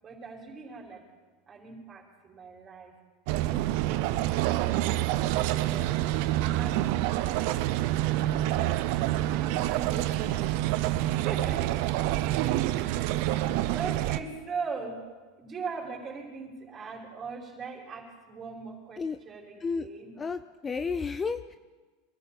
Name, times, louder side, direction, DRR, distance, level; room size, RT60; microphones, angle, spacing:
voice 1, 0.0-1.0 1.5-2.9 3.4-4.2 5.6-5.9 6.3-7.0 7.7-8.8 9.3-11.6 12.3-13.4 13.7-15.0 15.4-20.1, right 4 dB, 30° right, -2 dB, 4.8 m, -41 dB
sound 1, 3.3-14.2, right 14 dB, 60° right, 0.8 m, -27 dB
voice 2, 20.2-21.6, left 5 dB, 20° left, 10 dB, 0.6 m, -32 dB
24.0 x 13.0 x 4.2 m, 1.3 s
hypercardioid pair, 110°, 0 cm